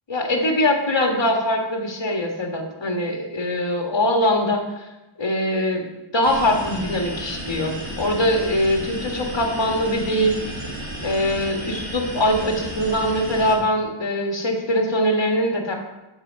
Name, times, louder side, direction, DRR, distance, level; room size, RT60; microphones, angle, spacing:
voice 1, 0.1-4.9 5.2-5.9 6.1-10.7 11.0-15.7, left 1 dB, 60° left, 2 dB, 1.9 m, -22 dB
sound 1, 6.2-13.6, right 1 dB, 75° right, 2.6 m, -33 dB
8.7 x 5.7 x 6.9 m, 1.0 s
wide cardioid pair, 45°, 48 cm